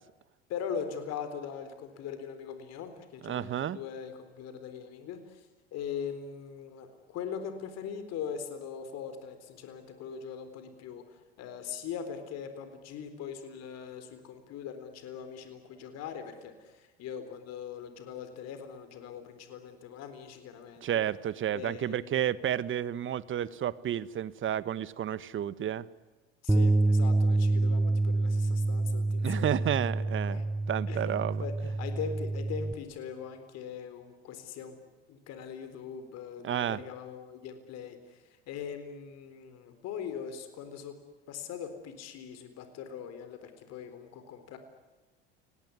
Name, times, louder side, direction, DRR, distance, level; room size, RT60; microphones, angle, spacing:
voice 1, 0.5-21.0 21.5-22.5 26.4-30.4 30.9-34.8 35.1-41.0 41.3-44.6, left 7 dB, 60° left, 9 dB, 4.0 m, -41 dB
voice 2, 3.2-3.8 20.8-25.9 29.2-30.4 30.7-31.4 36.4-36.8, right 10 dB, 40° right, 17 dB, 1.4 m, -31 dB
Bass guitar, 26.5-32.7, right 2 dB, 5° right, 1.2 m, -27 dB
29.0 x 19.5 x 9.7 m, 1.2 s
hypercardioid pair, 75°, 30 cm